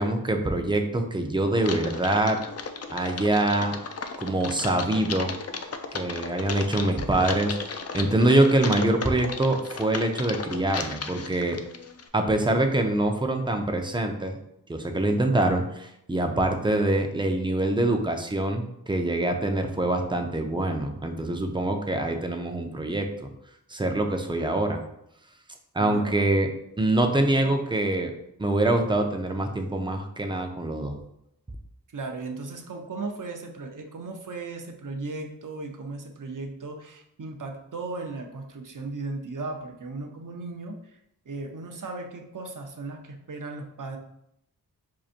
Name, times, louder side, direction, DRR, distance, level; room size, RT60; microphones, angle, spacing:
voice 1, 0.0-2.4 2.9-3.7 4.2-5.3 5.9-11.6 12.1-14.4 14.7-23.3 23.7-24.8 25.7-26.5 26.8-28.1 28.4-30.9, right 1 dB, 15° right, 4 dB, 0.5 m, -24 dB
Typing, 1.6-12.1, left 5 dB, 40° left, 0.4 m, -35 dB
voice 2, 25.8-26.2 27.3-27.5 31.9-41.0 41.3-44.0, right 3 dB, 55° right, 3 dB, 0.6 m, -36 dB
4.7 x 2.6 x 2.5 m, 0.78 s
cardioid pair, 45°, 39 cm